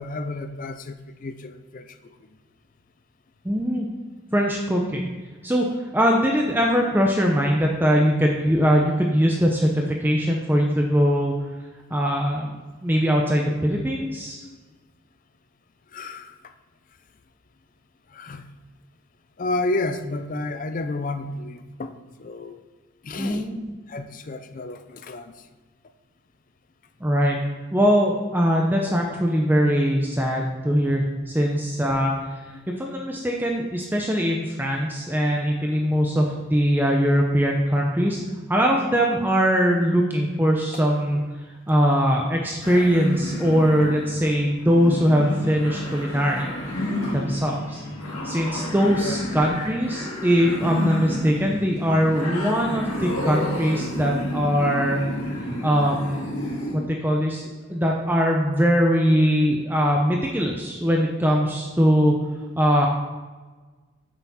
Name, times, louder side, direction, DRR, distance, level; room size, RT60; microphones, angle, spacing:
voice 1, 0.0-2.3 14.4-14.6 15.9-16.4 18.1-18.5 19.4-22.6 23.0-23.5 23.9-25.5 30.4-30.5 49.0-49.2, left 2 dB, 40° left, 8 dB, 0.5 m, -31 dB
voice 2, 3.4-3.9 4.3-5.1 5.4-5.6 5.9-11.3 11.9-12.6 12.8-14.4 23.2-23.6 27.0-27.4 27.7-32.4 32.8-38.2 38.5-41.2 41.7-46.5 47.1-47.8 48.2-56.3 56.7-57.4 57.7-62.1 62.6-62.9, equal, 10° right, 0 dB, 0.6 m, -21 dB
sound 1, 42.6-56.7, left 1 dB, 90° left, 2.0 m, -31 dB
7.1 x 6.8 x 4.2 m, 1.3 s
head